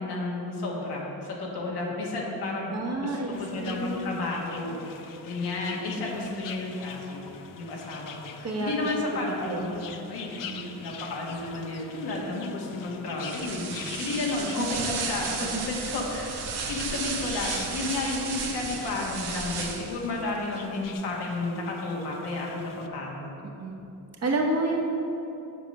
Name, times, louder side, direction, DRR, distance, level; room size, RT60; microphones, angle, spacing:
voice 1, 0.0-2.7 3.0-4.8 5.2-7.3 7.6-10.4 10.8-16.4 16.7-23.4, left 2 dB, 85° left, -2 dB, 1.6 m, -32 dB
voice 2, 2.7-4.1 6.2-6.3 8.4-10.0 10.5-10.7 14.7-14.8 15.5-15.6 23.4-23.8 24.2-24.9, right 2 dB, 40° right, 0 dB, 1.3 m, -30 dB
sound 1, 3.3-22.9, left 7 dB, 55° left, 0.6 m, -44 dB
sound 2, 13.2-20.1, right 5 dB, 75° right, 1.0 m, -34 dB
7.5 x 5.1 x 5.5 m, 2.9 s
cardioid pair, 90°, 39 cm